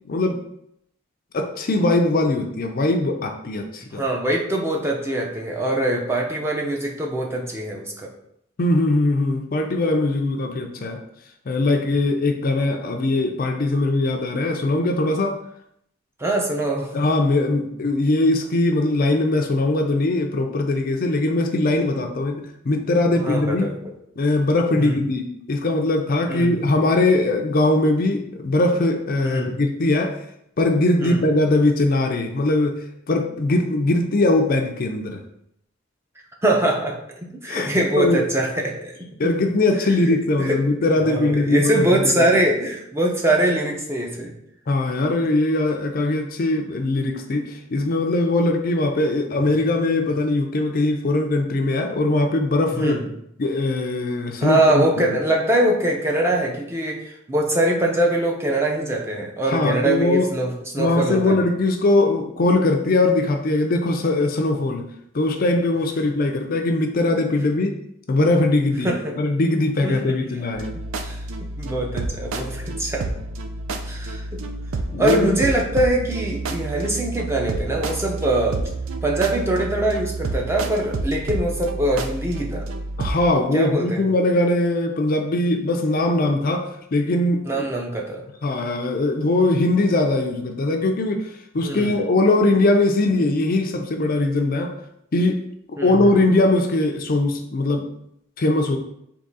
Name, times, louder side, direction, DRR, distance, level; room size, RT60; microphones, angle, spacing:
voice 1, 0.1-0.4 1.3-4.0 8.6-11.0 11.5-15.4 16.9-23.7 24.2-30.2 30.6-35.2 37.5-37.7 38.0-38.2 39.2-42.1 44.7-53.0 53.4-55.0 59.5-60.3 60.8-64.9 65.1-67.7 68.1-68.9 69.2-70.7 74.9-75.3 83.0-87.7 88.4-94.7 95.1-95.4 95.8-97.9 98.4-98.8, left 2 dB, 45° left, 4 dB, 0.4 m, -21 dB
voice 2, 3.9-8.1 16.2-16.9 23.2-23.9 24.8-25.0 26.3-26.7 29.2-29.6 31.0-31.3 36.4-37.0 37.2-39.3 39.8-40.0 40.4-40.6 41.0-44.3 52.7-53.1 54.4-61.4 68.8-69.1 69.8-70.2 70.7-73.1 73.8-74.4 75.0-78.6 79.0-82.6 83.5-84.1 87.4-88.2 91.6-92.0 95.8-96.1, right 1 dB, 15° right, -1 dB, 0.5 m, -23 dB
sound 1, 70.5-83.3, right 3 dB, 80° right, 0.4 m, -29 dB
3.6 x 2.9 x 4.0 m, 0.74 s
head